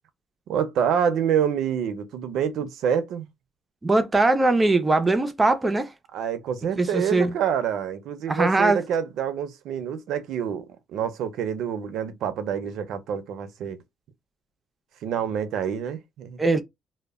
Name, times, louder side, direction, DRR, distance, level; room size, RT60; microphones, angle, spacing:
voice 1, 0.5-3.3 6.1-13.8 15.0-16.4, right 8 dB, 70° right, 0.5 m, -27 dB
voice 2, 3.8-5.9 6.8-7.3 8.3-8.8 16.4-16.6, right 2 dB, 15° right, 0.4 m, -21 dB
2.1 x 2.0 x 3.4 m
cardioid pair, 155°, 0 cm